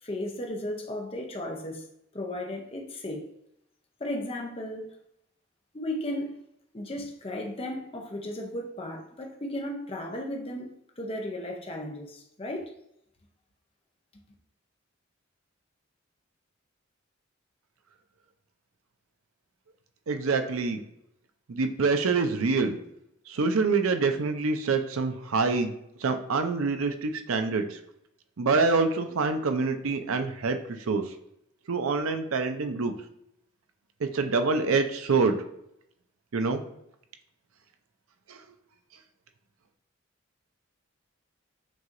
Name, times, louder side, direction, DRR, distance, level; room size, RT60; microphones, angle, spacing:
voice 1, 0.0-1.9 2.1-3.3 4.0-4.9 5.7-6.4 6.7-12.7 14.1-14.2, left 1 dB, 25° left, 0.7 m, -35 dB
voice 2, 20.1-20.8 21.5-22.8 23.3-25.7 26.0-27.8 28.4-30.6 30.9-31.0 31.7-32.9 34.0-35.4 36.3-36.6 38.3-38.4, right 4 dB, 85° right, 0.5 m, -26 dB
6.1 x 2.8 x 2.5 m
head